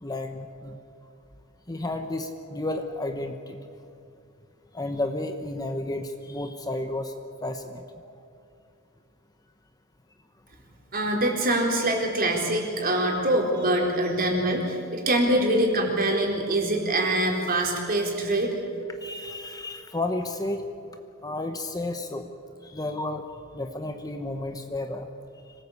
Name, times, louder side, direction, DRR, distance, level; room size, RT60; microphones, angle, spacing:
voice 1, 0.0-0.8 1.7-3.6 4.7-7.1 7.4-7.8 19.0-20.6 21.2-22.2 22.6-23.2 23.5-25.1, left 2 dB, 15° left, 6 dB, 1.0 m, -32 dB
voice 2, 10.9-18.5, right 1 dB, 40° right, 0 dB, 4.2 m, -24 dB
25.5 x 18.5 x 8.4 m, 2.5 s
head